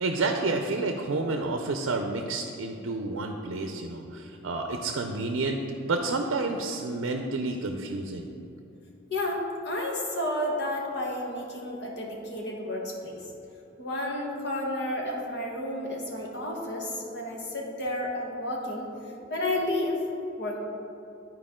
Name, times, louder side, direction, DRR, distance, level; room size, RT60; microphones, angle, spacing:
voice 1, 0.0-8.3, right 3 dB, 80° right, 4 dB, 0.5 m, -30 dB
voice 2, 9.1-13.2 13.8-18.9 19.3-20.0 20.4-20.6, left 1 dB, 55° left, -1 dB, 1.4 m, -31 dB
12.0 x 4.6 x 3.7 m, 2.7 s
head